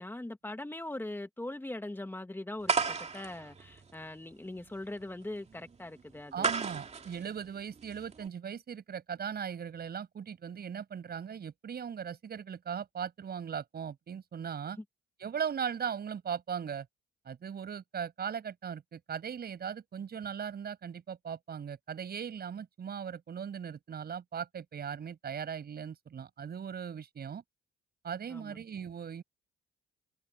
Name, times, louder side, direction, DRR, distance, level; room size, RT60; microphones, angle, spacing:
voice 1, 0.0-6.5 28.3-28.6, left 1 dB, 10° left, 2.1 m, -41 dB
sound 1, 2.6-8.3, right 5 dB, 35° right, 2.4 m, -35 dB
voice 2, 6.3-14.8 15.2-16.9 17.2-27.4 28.0-29.2, right 7 dB, 50° right, 7.9 m, -38 dB
cardioid pair, 90°, 20 cm